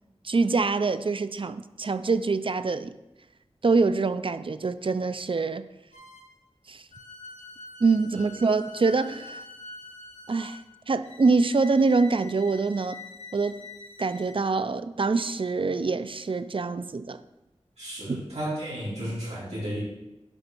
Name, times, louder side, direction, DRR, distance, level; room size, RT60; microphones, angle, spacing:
voice 1, 0.2-2.9 3.6-5.7 6.7-6.8 7.8-9.4 10.3-10.6 10.9-13.0 13.3-13.6 14.0-17.2 18.1-18.2, right 4 dB, 50° right, 12 dB, 0.5 m, -25 dB
sound 1, 5.9-6.4 6.9-14.4, left 3 dB, 85° left, 1.1 m, -45 dB
voice 2, 17.8-19.8, right 1 dB, 70° right, -8 dB, 3.1 m, -33 dB
10.5 x 4.0 x 5.4 m, 0.99 s
wide cardioid pair, 65°, 11 cm